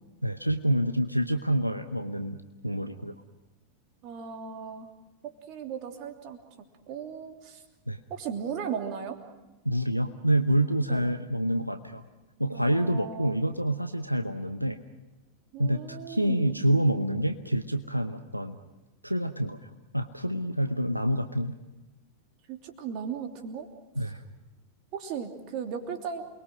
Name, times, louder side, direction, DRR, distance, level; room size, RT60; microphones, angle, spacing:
voice 1, 0.2-2.4 2.6-3.1 7.9-8.0 9.6-12.0 12.4-14.8 15.6-18.6 19.0-21.6 24.0-24.2, right 1 dB, 90° right, 8 dB, 0.9 m, -27 dB
voice 2, 4.0-4.9 5.5-6.4 6.9-7.6 8.1-9.2 10.9-11.1 12.5-13.4 15.5-16.6 22.5-23.7 24.9-26.2, right 7 dB, 40° right, 4 dB, 3.0 m, -36 dB
28.5 x 21.5 x 6.2 m, 1.0 s
figure-of-eight pair, 90°, 0 cm